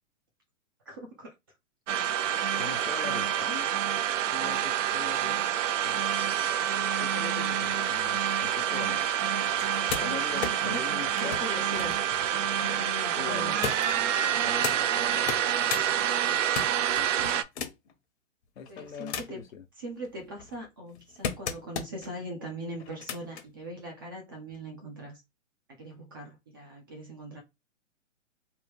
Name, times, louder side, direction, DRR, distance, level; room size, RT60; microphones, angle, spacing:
voice 1, 0.9-1.3 10.3-10.8 11.2-12.0 12.5-13.6 18.7-19.4 19.8-25.2 25.7-27.4, equal, 20° right, 0.3 m, -41 dB
sound 1, 1.9-17.4, right 10 dB, 70° right, 0.6 m, -27 dB
voice 2, 2.5-3.7 4.3-6.0 7.0-9.0 10.0-11.4 13.2-13.6 14.4-15.9 17.0-17.4 18.6-19.6, left 7 dB, 85° left, 0.9 m, -42 dB
sound 2, 9.5-12.8 13.6-14.8 15.2-15.9 16.3-17.9 18.6-19.5 20.0-22.1 22.8-23.5 24.5-24.6, left 7 dB, 60° left, 0.9 m, -37 dB
3.1 x 2.1 x 3.3 m
hypercardioid pair, 145°, 39 cm